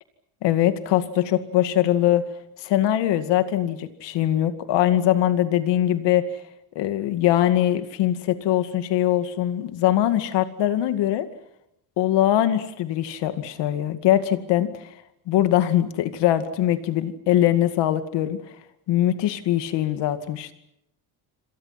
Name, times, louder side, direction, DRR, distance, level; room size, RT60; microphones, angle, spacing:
voice 1, 0.4-2.2 2.6-6.2 6.8-11.3 12.0-14.7 15.3-18.4 18.9-20.5, left 12 dB, 60° left, 10 dB, 2.3 m, -22 dB
28.0 x 26.5 x 5.9 m, 0.81 s
cardioid pair, 175°, 49 cm